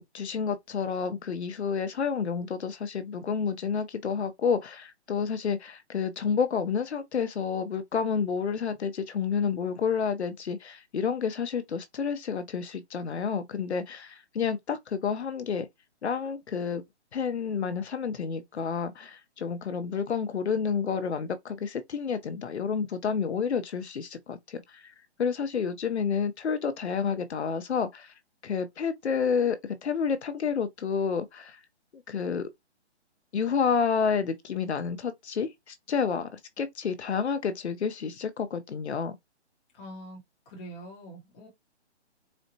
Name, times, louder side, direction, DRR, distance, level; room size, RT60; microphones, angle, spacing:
voice 1, 0.0-15.7 16.0-16.8 17.1-24.9 25.2-28.1 28.4-31.6 32.1-32.5 33.3-39.2, left 6 dB, 70° left, 0.8 m, -30 dB
voice 2, 39.7-40.2 40.5-41.5, right 1 dB, 10° left, 0.8 m, -44 dB
4.1 x 2.1 x 2.7 m
hypercardioid pair, 160°, 35 cm